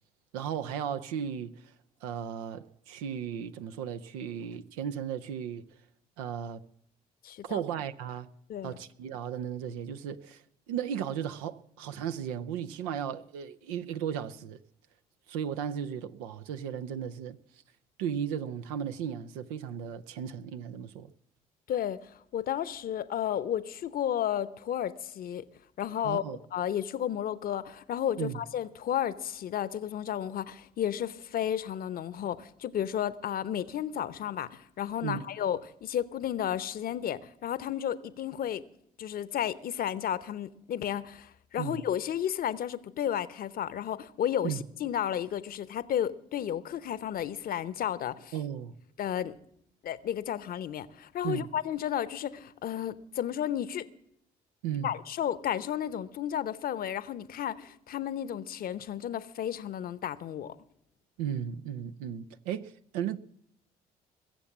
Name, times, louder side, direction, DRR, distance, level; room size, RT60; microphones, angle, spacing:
voice 1, 0.3-1.7 2.0-5.7 6.2-6.7 7.4-8.3 8.6-14.6 15.3-17.4 18.0-21.1 26.0-26.4 28.2-28.4 35.0-35.2 41.6-41.8 44.4-44.6 48.3-48.8 51.2-51.5 54.6-54.9 61.2-63.2, right 9 dB, 80° right, 0.7 m, -35 dB
voice 2, 7.2-7.6 8.5-8.8 21.7-25.5 25.8-26.2 26.5-38.6 39.0-48.3 49.0-49.3 49.8-53.9 54.8-60.6, left 10 dB, 55° left, 0.9 m, -32 dB
21.5 x 7.4 x 7.3 m
hypercardioid pair, 55°, 18 cm